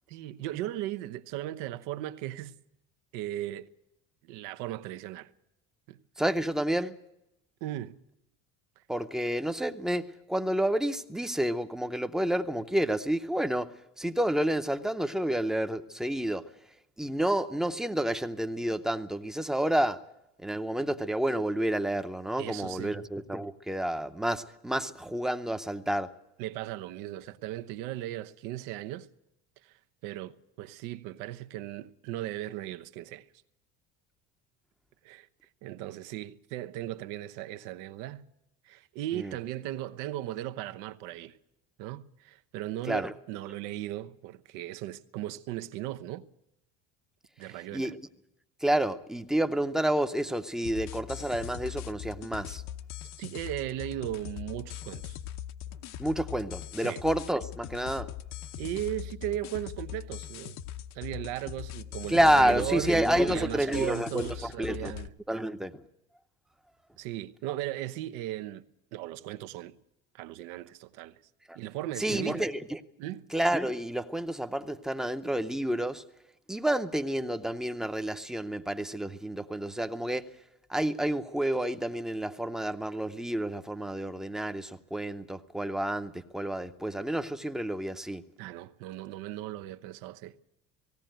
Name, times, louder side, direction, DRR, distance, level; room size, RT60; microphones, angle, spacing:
voice 1, 0.1-2.6 3.1-3.7 4.2-5.3 5.9-6.0 7.6-8.0 22.4-22.9 26.4-29.1 29.6-29.8 30.0-33.3 35.0-35.3 35.6-38.2 38.6-41.4 41.8-46.3 47.4-47.9 53.2-55.2 56.8-57.0 58.6-60.6 60.9-65.1 67.0-68.7 68.9-69.8 70.1-71.2 71.5-72.5 73.0-73.3 88.4-90.3, right 14 dB, 85° right, 1.0 m, -37 dB
voice 2, 6.2-6.9 8.9-13.7 14.0-16.4 17.0-20.0 20.4-26.1 39.1-39.3 42.9-43.1 47.7-48.0 48.6-52.6 56.0-58.1 62.1-64.9 65.3-65.8 71.5-71.6 72.0-72.8 73.3-76.0 76.5-80.3 80.7-88.2, right 1 dB, ahead, 0.7 m, -29 dB
sound 1, 50.6-65.1, left 11 dB, 60° left, 0.8 m, -41 dB
18.5 x 17.0 x 9.1 m
cardioid pair, 155°, 30 cm